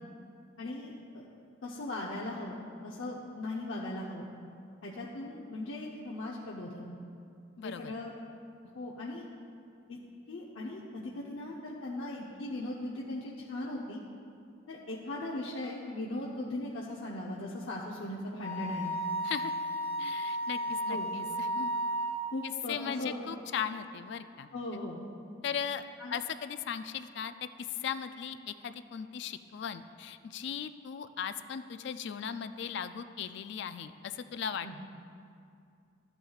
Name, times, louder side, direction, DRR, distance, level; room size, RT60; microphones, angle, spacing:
voice 1, 0.6-1.2 1.6-4.3 4.8-6.9 7.6-8.1 8.7-9.3 9.9-10.0 10.3-14.0 14.7-19.0 20.9-21.1 22.3-23.3 24.5-25.0 26.0-26.1 34.6-34.8, left 1 dB, 75° left, -4 dB, 0.7 m, -38 dB
voice 2, 7.6-7.9 19.2-19.5 20.0-21.7 22.4-24.5 25.4-25.8 26.1-34.8, left 7 dB, 60° left, 11 dB, 0.3 m, -38 dB
Wind instrument woodwind instrument, 18.4-22.3, right 1 dB, 30° right, 0.8 m, -33 dB
13.0 x 8.9 x 2.4 m, 2.4 s
head